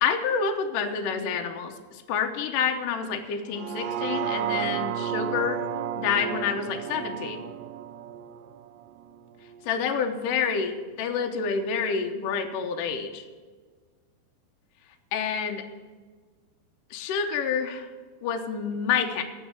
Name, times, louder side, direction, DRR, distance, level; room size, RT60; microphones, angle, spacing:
voice 1, 0.0-5.6 6.0-7.4 9.7-13.2 15.1-15.6 16.9-17.9 18.2-19.2, left 6 dB, 70° left, 3 dB, 2.1 m, -28 dB
sound 1, 3.5-9.7 10.1-10.2, right 9 dB, 85° right, 2.9 m, -32 dB
16.5 x 6.5 x 8.0 m, 1.5 s
omnidirectional pair, 5.0 m